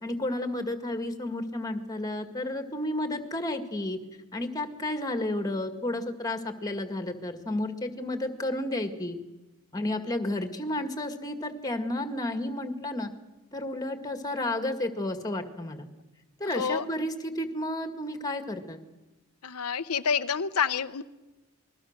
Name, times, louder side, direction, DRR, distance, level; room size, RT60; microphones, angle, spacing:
voice 1, 0.0-4.0 4.3-9.2 9.7-13.1 13.5-15.9 16.4-18.8, left 1 dB, 15° left, 8 dB, 1.9 m, -32 dB
voice 2, 19.4-21.0, left 6 dB, 85° left, 11 dB, 0.7 m, -28 dB
28.5 x 21.0 x 6.6 m, 1.1 s
head